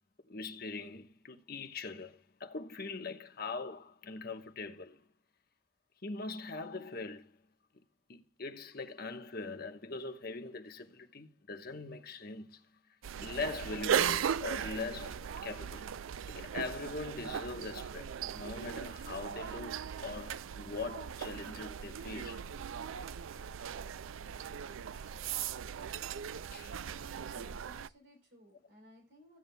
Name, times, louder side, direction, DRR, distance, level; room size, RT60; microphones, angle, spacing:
voice 1, 0.3-5.0 6.0-7.3 8.1-12.6 13.2-15.8 16.3-22.5 26.5-26.7, left 3 dB, 50° left, 1.2 m, -42 dB
sound 1, 13.0-27.9, right 8 dB, 80° right, 0.4 m, -38 dB
voice 2, 27.3-29.4, equal, 60° right, 3.5 m, -58 dB
15.5 x 8.7 x 2.2 m
head